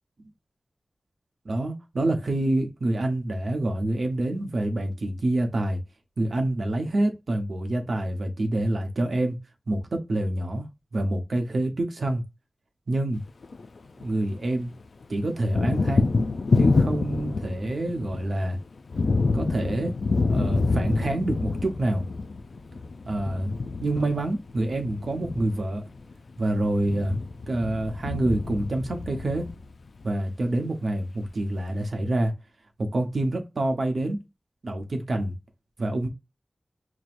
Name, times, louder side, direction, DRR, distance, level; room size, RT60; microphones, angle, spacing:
voice 1, 1.4-5.8 6.2-9.4 9.7-10.6 10.9-12.2 12.9-13.2 14.0-14.7 15.1-16.1 16.6-18.6 19.3-20.0 20.3-22.0 23.1-23.5 23.8-25.8 26.4-27.2 27.5-29.5 30.0-32.4 32.8-34.2 34.6-35.4 35.8-36.1, right 1 dB, 80° right, 0.9 m, -27 dB
Thunder, 13.3-14.5 14.8-30.0, left 3 dB, 85° left, 0.3 m, -27 dB
6.0 x 2.2 x 2.5 m
wide cardioid pair, 55°, 0 cm